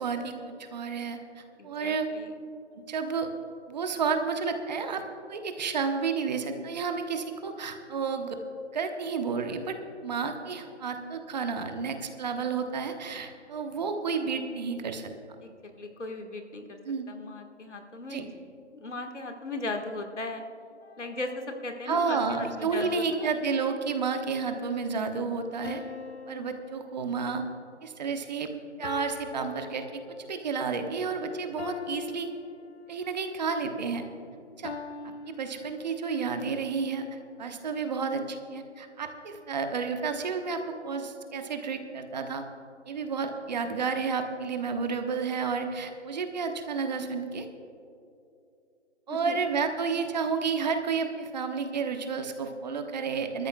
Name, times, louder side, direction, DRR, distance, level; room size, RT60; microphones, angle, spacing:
voice 1, 0.0-2.1 2.9-3.3 3.7-5.0 5.3-8.4 8.7-9.8 10.0-15.1 16.8-17.1 18.1-18.2 21.9-25.8 26.3-27.4 27.8-28.5 28.8-32.3 32.9-34.0 34.6-34.7 35.0-42.4 42.9-47.5 49.1-53.5, right 5 dB, 35° right, 6 dB, 1.1 m, -31 dB
voice 2, 1.6-2.3 15.4-16.8 17.1-18.4 18.7-20.4 21.0-23.3 49.1-49.4, left 2 dB, 85° left, 4 dB, 1.7 m, -37 dB
sound 1, 20.8-21.3 22.8-24.3 25.6-27.5 28.8-30.4 31.6-33.2 34.6-36.2, left 5 dB, 65° left, 1.0 m, -42 dB
24.5 x 13.5 x 2.3 m, 2.6 s
figure-of-eight pair, 150°, 35 cm